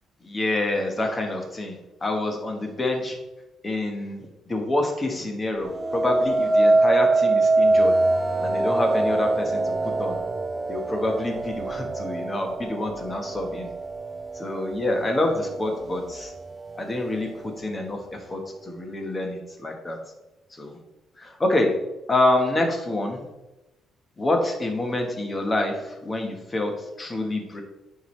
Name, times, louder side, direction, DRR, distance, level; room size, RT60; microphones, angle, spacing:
voice 1, 0.2-1.8 2.0-3.2 3.6-8.0 8.4-10.2 10.7-13.7 14.3-16.3 16.7-20.0 20.5-20.8 21.2-21.8 22.1-23.2 24.2-27.6, left 2 dB, 20° left, 3 dB, 1.2 m, -27 dB
sound 1, 5.7-14.8 15.4-15.8, right 2 dB, 20° right, 0.4 m, -23 dB
9.0 x 4.8 x 3.2 m, 1.0 s
cardioid pair, 135°, 0 cm